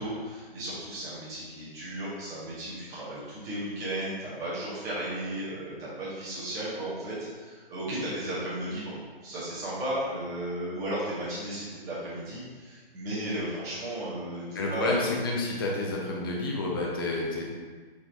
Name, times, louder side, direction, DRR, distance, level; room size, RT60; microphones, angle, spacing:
voice 1, 0.0-15.0, right 1 dB, 10° right, -9 dB, 0.9 m, -35 dB
voice 2, 14.5-17.5, left 2 dB, 25° left, -2 dB, 0.6 m, -29 dB
4.4 x 4.4 x 2.6 m, 1.5 s
figure-of-eight pair, 145°, 31 cm